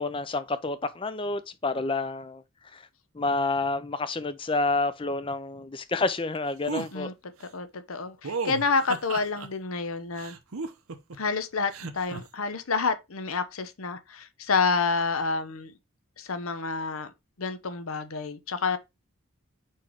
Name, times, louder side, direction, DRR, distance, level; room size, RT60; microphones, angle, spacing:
voice 1, 0.0-2.4 2.7-2.8 3.1-7.1, left 3 dB, 25° left, 0.5 m, -29 dB
sound 1, 6.7-6.9 8.2-9.5 10.2-11.2 11.7-12.2, right 4 dB, 80° right, 0.9 m, -34 dB
voice 2, 6.8-10.4 11.2-15.8 16.2-17.1 17.4-18.8, left 4 dB, 80° left, 0.8 m, -29 dB
4.7 x 4.5 x 4.6 m
head